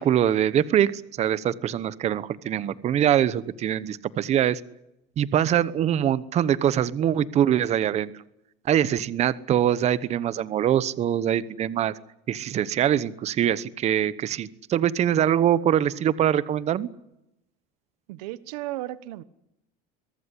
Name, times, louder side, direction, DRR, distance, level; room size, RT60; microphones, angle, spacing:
voice 1, 0.0-4.6 5.2-8.1 8.6-11.9 12.3-16.9, right 10 dB, 35° right, 16 dB, 1.0 m, -23 dB
voice 2, 18.1-19.2, right 16 dB, 80° right, 16 dB, 1.3 m, -34 dB
23.5 x 18.0 x 9.9 m, 0.85 s
supercardioid pair, 135°, 20 cm